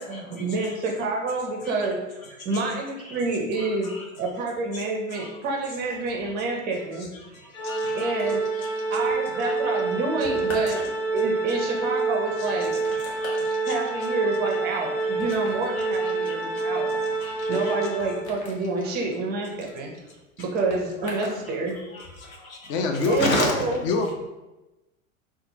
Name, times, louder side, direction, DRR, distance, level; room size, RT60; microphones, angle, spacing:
voice 1, 0.0-3.9 4.2-7.1 7.4-8.5 8.9-12.8 13.6-17.0 17.5-19.9 20.4-21.8 23.1-23.8, right 3 dB, 25° right, 0 dB, 0.5 m, -28 dB
voice 2, 3.6-4.0 4.7-4.8 5.1-5.3 6.4-6.5 7.3-9.0 12.9-13.7 14.7-14.8 15.8-16.6 17.1-17.7 21.9-23.5, left 2 dB, 85° left, 0 dB, 0.9 m, -34 dB
Organ, 7.5-18.4, right 3 dB, 65° left, 1.2 m, -27 dB
sound 1, 8.2-21.5 21.7-22.4, left 1 dB, 45° left, 1.1 m, -44 dB
voice 3, 22.7-23.3 23.8-24.1, left 4 dB, 30° left, 4 dB, 0.4 m, -24 dB
4.1 x 2.4 x 2.7 m, 1.0 s
hypercardioid pair, 100°, 40 cm